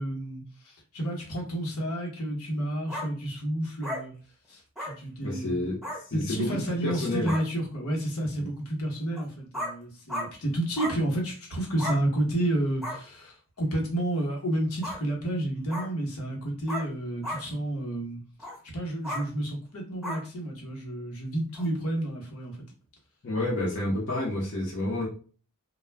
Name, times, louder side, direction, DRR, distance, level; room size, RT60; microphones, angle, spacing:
voice 1, 0.0-4.1 4.5-5.8 6.1-18.2 18.7-22.6, right 1 dB, 80° left, 0 dB, 1.0 m, -30 dB
sound 1, 2.9-3.1 3.8-4.0 4.8-4.9 5.8-6.0 6.9-7.0 7.3-7.4 9.1-9.2 9.5-9.7 10.1-10.3 10.8-11.0 11.8-12.0 12.8-13.0 14.8-15.0 15.7-15.9 16.7-16.9 17.2-17.4 18.4-18.6 19.0-19.2 20.0-20.2 21.5-21.7, equal, ahead, 0.9 m, -33 dB
voice 2, 5.2-5.8 6.1-6.5 6.8-7.3 8.4-8.5 23.2-25.1, left 1 dB, 55° left, -4 dB, 0.7 m, -29 dB
2.2 x 2.1 x 3.2 m, 0.39 s
head